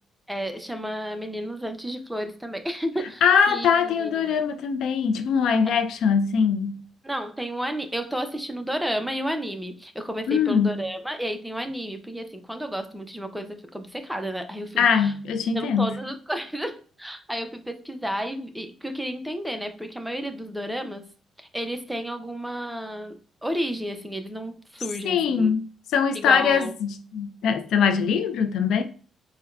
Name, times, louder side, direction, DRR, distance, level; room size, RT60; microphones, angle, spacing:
voice 1, 0.3-4.4 5.6-5.8 7.0-15.1 15.5-21.1 21.4-25.5 26.1-26.7, equal, 5° right, 0.5 m, -32 dB
voice 2, 3.2-6.8 10.3-10.8 14.8-16.0 25.0-25.6 25.9-28.8, left 6 dB, 75° left, 0.4 m, -22 dB
4.4 x 2.2 x 2.4 m
cardioid pair, 90°, 0 cm